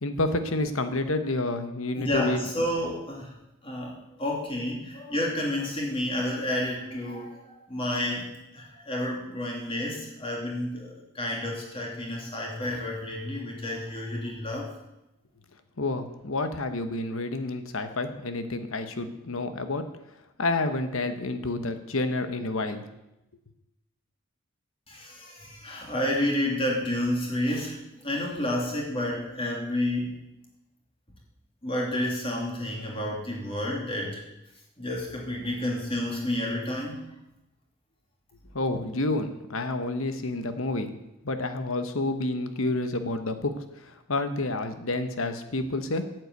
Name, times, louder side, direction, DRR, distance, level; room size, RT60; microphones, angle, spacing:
voice 1, 0.0-2.4 15.8-19.8 20.4-22.9 38.5-40.9 41.2-43.5 44.1-46.0, left 2 dB, 75° left, 9 dB, 1.2 m, -29 dB
voice 2, 1.9-3.3 3.6-14.7 24.9-30.2 31.6-34.2 34.8-37.1, left 1 dB, 25° left, -2 dB, 2.9 m, -30 dB
9.7 x 7.9 x 8.2 m, 0.91 s
head